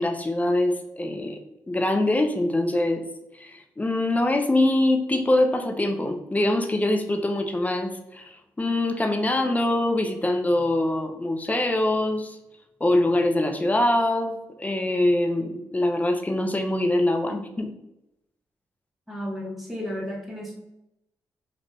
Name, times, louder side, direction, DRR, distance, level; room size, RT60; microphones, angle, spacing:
voice 1, 0.0-1.4 1.7-3.0 3.4-12.4 12.8-17.7, left 1 dB, 15° left, 5 dB, 0.5 m, -24 dB
voice 2, 19.1-20.5, equal, ahead, -3 dB, 1.0 m, -33 dB
2.4 x 2.2 x 3.1 m, 0.88 s
hypercardioid pair, 40°, 9 cm